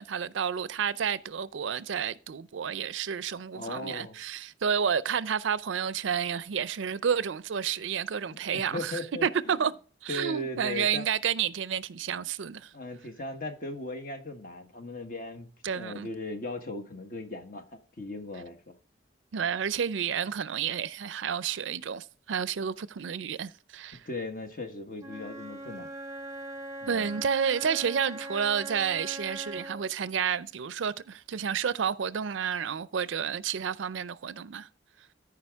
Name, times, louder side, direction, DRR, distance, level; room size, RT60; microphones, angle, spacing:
voice 1, 0.0-9.7 10.0-12.7 15.6-16.1 19.3-24.0 26.9-34.7, right 7 dB, 85° right, 0.5 m, -30 dB
voice 2, 3.5-4.2 8.2-9.6 10.1-11.0 12.7-18.8 24.1-25.9 26.8-27.1, left 2 dB, 45° left, 1.2 m, -38 dB
Wind instrument woodwind instrument, 25.0-29.9, right 1 dB, 15° right, 0.7 m, -41 dB
14.0 x 4.9 x 3.5 m
head